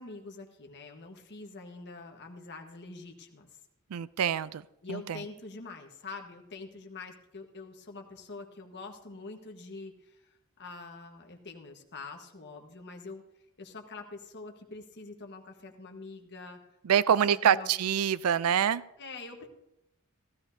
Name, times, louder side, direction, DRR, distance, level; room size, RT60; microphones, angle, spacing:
voice 1, 0.0-3.5 4.8-13.2 13.6-16.6 17.3-17.7 19.0-19.5, left 3 dB, 55° left, 4 dB, 1.4 m, -45 dB
voice 2, 3.9-4.6 4.9-5.2 16.8-18.8, right 8 dB, 80° right, 18 dB, 0.4 m, -26 dB
15.5 x 13.5 x 2.7 m, 0.88 s
head